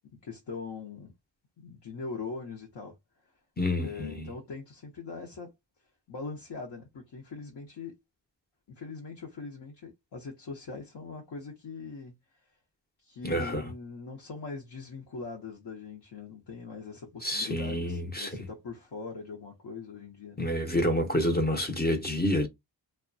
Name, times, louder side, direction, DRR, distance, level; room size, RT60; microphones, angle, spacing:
voice 1, 0.2-1.1 1.6-3.0 3.8-5.5 6.1-7.9 8.7-12.1 13.0-20.5, left 4 dB, 60° left, 0.8 m, -41 dB
voice 2, 3.6-4.3 13.2-13.6 17.2-18.4 20.4-22.5, left 1 dB, 20° left, 0.6 m, -28 dB
2.7 x 2.2 x 2.5 m
cardioid pair, 65°, 44 cm